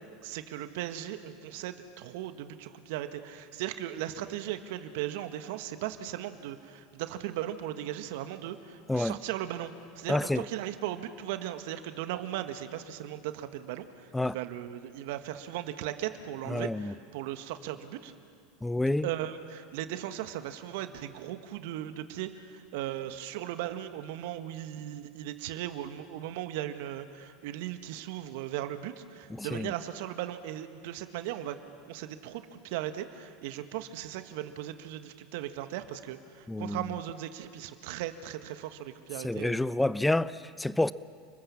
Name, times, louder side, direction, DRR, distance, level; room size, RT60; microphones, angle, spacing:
voice 1, 0.2-18.1 19.0-31.6 31.8-39.6, right 12 dB, 65° right, 1.6 m, -37 dB
voice 2, 10.1-10.4 14.1-14.4 16.5-16.9 18.6-19.1 29.4-29.7 36.5-36.8 39.2-40.9, left 2 dB, 10° left, 0.7 m, -28 dB
30.0 x 21.0 x 7.3 m
hypercardioid pair, 80°, 0 cm